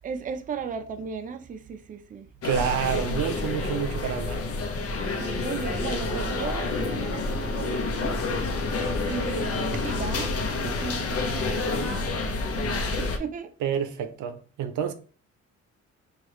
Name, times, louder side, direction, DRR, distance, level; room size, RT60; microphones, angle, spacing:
voice 1, 0.0-2.3 3.3-3.8 5.2-8.2 9.0-13.5, right 6 dB, 30° right, 0.4 m, -36 dB
sound 1, 2.4-13.2, left 3 dB, 50° left, 0.7 m, -28 dB
voice 2, 2.4-4.4 13.6-14.9, right 9 dB, 80° right, 0.6 m, -28 dB
4.6 x 2.4 x 3.0 m
cardioid pair, 90°, 30 cm